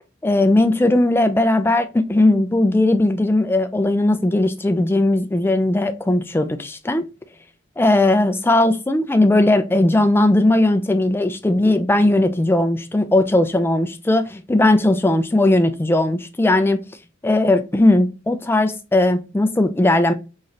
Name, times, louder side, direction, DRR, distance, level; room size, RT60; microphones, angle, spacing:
voice 1, 0.2-7.1 7.8-16.8 17.2-20.1, left 1 dB, 10° left, 0.4 m, -18 dB
4.0 x 3.1 x 2.5 m
head